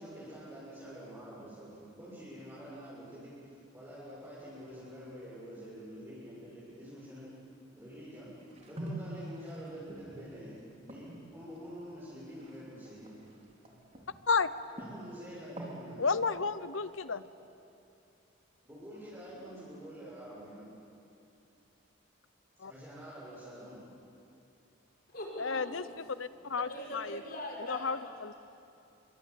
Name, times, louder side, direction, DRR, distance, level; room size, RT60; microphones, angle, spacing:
voice 1, 0.0-7.3 7.8-8.3 8.6-13.2 14.8-16.1 18.6-20.6 22.7-23.8, equal, 15° right, -10 dB, 7.1 m, -47 dB
sound 1, 8.1-14.2 14.5-15.8 16.2-17.0, right 1 dB, 30° right, 3.7 m, -46 dB
voice 2, 16.0-17.2 22.6-22.7 25.4-25.8 26.2-26.7 26.9-27.2 27.7-28.3, left 4 dB, 80° left, 14 dB, 0.9 m, -31 dB
voice 3, 25.1-25.9 26.5-28.0, left 1 dB, 45° left, -1 dB, 5.6 m, -42 dB
28.0 x 23.5 x 8.6 m, 2.7 s
head